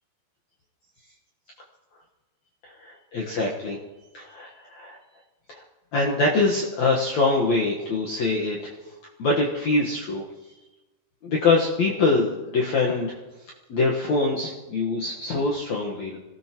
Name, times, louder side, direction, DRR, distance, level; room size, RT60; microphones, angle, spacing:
voice 1, 2.6-3.8 4.1-5.0 5.5-5.6 5.9-8.7 9.2-10.2 11.2-13.2 13.7-16.2, left 3 dB, 60° left, -3 dB, 2.2 m, -24 dB
26.5 x 17.0 x 3.0 m, 1.1 s
omnidirectional pair, 4.7 m